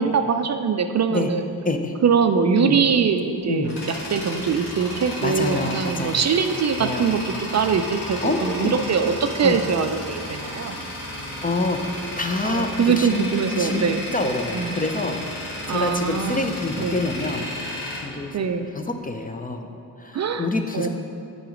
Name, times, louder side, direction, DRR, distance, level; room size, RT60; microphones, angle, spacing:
voice 1, 0.0-1.4 2.0-3.8 4.1-10.8 12.4-14.0 14.5-14.7 15.7-17.0 18.3-18.7 20.1-20.5 20.7-20.9, right 6 dB, 45° right, 7 dB, 0.4 m, -22 dB
voice 2, 1.6-2.0 2.6-2.8 3.5-3.7 5.2-6.2 6.8-7.1 8.2-8.7 9.4-9.6 11.4-11.8 12.2-13.2 13.6-13.9 14.1-15.2 15.7-17.4 18.0-19.7 20.0-20.9, left 2 dB, 20° left, 5 dB, 0.5 m, -26 dB
Tools, 3.2-19.0, left 1 dB, 80° left, 1.7 m, -33 dB
8.9 x 3.9 x 5.0 m, 2.5 s
cardioid pair, 80°, 39 cm